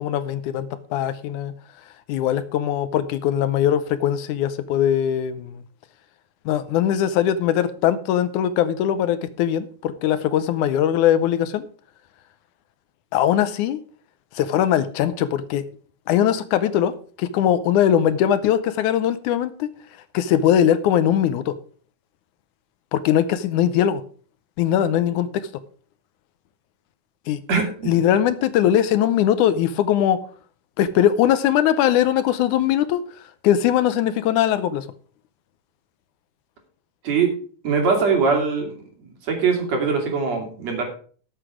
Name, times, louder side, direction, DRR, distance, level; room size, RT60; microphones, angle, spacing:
voice 1, 0.0-1.5 2.1-5.6 6.5-11.7 13.1-13.8 14.4-15.6 16.1-16.9 17.2-19.7 20.1-21.5 22.9-24.0 24.6-25.3 27.3-27.4 27.9-30.2 30.8-33.0 33.4-34.9, left 10 dB, 80° left, 2.1 m, -20 dB
voice 2, 27.5-28.0 37.0-37.3 37.6-38.8 39.2-40.8, right 5 dB, 55° right, 3.8 m, -21 dB
13.0 x 7.9 x 4.9 m
omnidirectional pair, 3.6 m